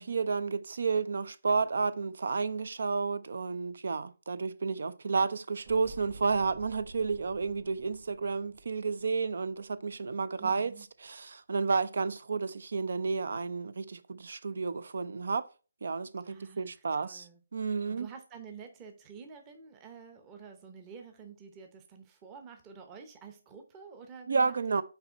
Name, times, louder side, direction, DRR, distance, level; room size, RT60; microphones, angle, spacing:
voice 1, 0.0-10.7 11.0-15.4 15.8-17.2 17.5-18.1 24.3-24.8, right 4 dB, 65° right, 0.5 m, -31 dB
sound 1, 5.6-9.9 10.2-10.3, right 3 dB, 45° right, 1.6 m, -52 dB
voice 2, 10.4-10.9 16.3-17.4 17.7-24.8, right 6 dB, 20° right, 0.8 m, -49 dB
5.9 x 4.3 x 3.9 m
figure-of-eight pair, 150°, 0 cm